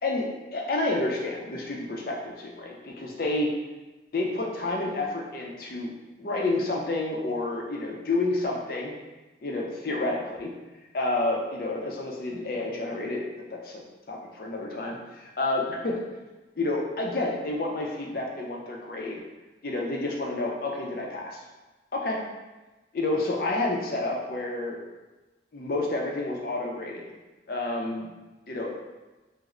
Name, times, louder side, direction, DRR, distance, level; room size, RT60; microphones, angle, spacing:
voice 1, 0.0-3.5 4.1-5.9 6.2-8.9 9.4-10.5 10.9-13.2 13.5-16.0 16.6-19.2 19.6-21.4 21.9-22.2 22.9-24.8 25.5-27.0 27.5-28.1 28.5-28.7, left 2 dB, 55° left, -1 dB, 0.5 m, -29 dB
3.1 x 2.0 x 3.6 m, 1.1 s
head